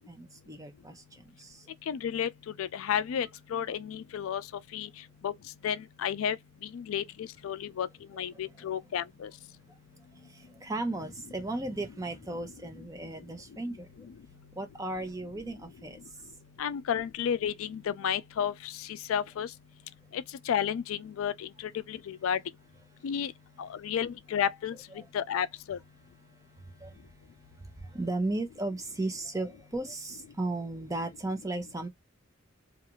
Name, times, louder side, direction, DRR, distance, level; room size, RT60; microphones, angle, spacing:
voice 1, 0.0-1.7 8.5-8.6 10.1-14.1 14.5-16.0 25.0-25.1 26.6-27.0 27.6-31.9, right 2 dB, 15° right, 0.5 m, -36 dB
voice 2, 1.9-2.3 2.6-4.4 4.7-4.9 5.2-5.3 5.6-6.4 6.7-7.0 7.4-7.9 8.2-9.3 16.6-18.5 19.1-19.5 20.1-21.5 21.9-22.4 23.0-23.3 23.6-24.8 25.1-25.8, left 8 dB, 85° left, 0.3 m, -31 dB
2.4 x 2.3 x 2.9 m
head